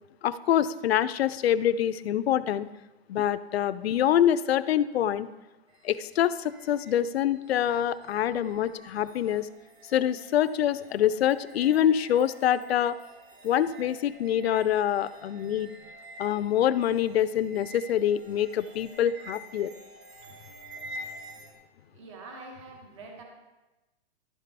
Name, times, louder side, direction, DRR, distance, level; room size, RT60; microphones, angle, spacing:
voice 1, 0.2-2.7 3.1-5.3 5.8-9.5 9.9-13.0 13.4-15.7 16.2-19.7, left 10 dB, 70° left, 15 dB, 0.5 m, -25 dB
sound 1, 5.7-21.5, right 1 dB, 80° right, 2.2 m, -48 dB
voice 2, 21.9-23.2, right 3 dB, 25° right, 2 dB, 1.1 m, -45 dB
11.5 x 5.3 x 4.1 m, 1.1 s
hypercardioid pair, 180°, 32 cm